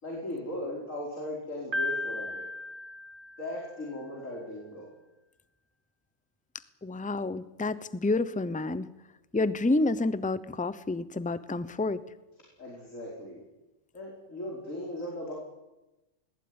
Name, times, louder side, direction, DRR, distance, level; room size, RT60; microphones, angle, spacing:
voice 1, 0.0-2.5 3.4-4.9 12.6-13.4 13.9-15.3, left 1 dB, 70° left, -3 dB, 5.4 m, -38 dB
Piano, 1.7-3.8, left 2 dB, 40° right, 1.9 m, -35 dB
voice 2, 6.8-8.9 9.3-12.0, left 2 dB, 10° left, 15 dB, 0.7 m, -29 dB
20.5 x 19.0 x 9.8 m, 1.0 s
omnidirectional pair, 1.4 m